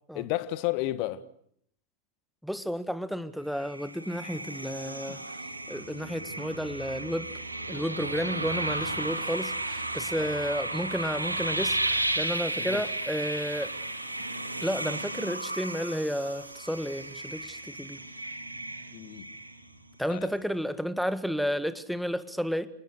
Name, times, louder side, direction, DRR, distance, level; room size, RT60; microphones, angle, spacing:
voice 1, 0.1-1.2 10.1-10.3 12.6-12.8 18.9-19.3 20.1-20.3, left 16 dB, 45° left, 1.5 m, -32 dB
voice 2, 2.4-5.3 5.7-7.3 7.7-13.7 14.6-18.0 20.0-22.7, equal, ahead, 1.7 m, -32 dB
sound 1, 3.6-19.9, right 2 dB, 85° right, 2.6 m, -34 dB
29.5 x 19.5 x 8.2 m
figure-of-eight pair, 90°, 0 cm